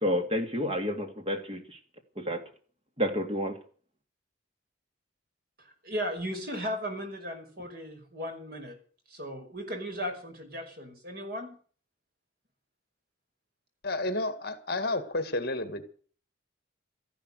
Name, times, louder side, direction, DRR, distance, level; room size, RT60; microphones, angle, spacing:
voice 1, 0.0-1.8 2.2-2.4 3.0-3.5, equal, 30° right, 5 dB, 2.7 m, -30 dB
voice 2, 5.6-8.8 9.1-11.6, equal, 50° right, 4 dB, 5.4 m, -36 dB
voice 3, 13.8-15.9, left 2 dB, 50° left, 11 dB, 1.9 m, -31 dB
14.0 x 11.5 x 8.1 m, 0.43 s
head